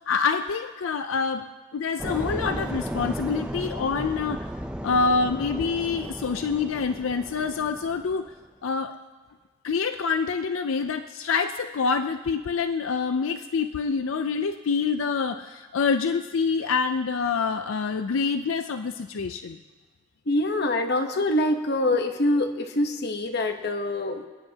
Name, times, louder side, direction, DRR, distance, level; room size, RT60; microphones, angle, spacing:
voice 1, 0.0-4.5 4.8-8.3 8.6-9.0 9.6-19.6, left 5 dB, 85° left, 8 dB, 0.5 m, -26 dB
sound 1, 2.0-8.3, equal, 5° right, 0.5 m, -34 dB
voice 2, 20.3-24.3, left 1 dB, 55° left, 5 dB, 1.0 m, -25 dB
27.5 x 9.9 x 2.8 m, 1.4 s
head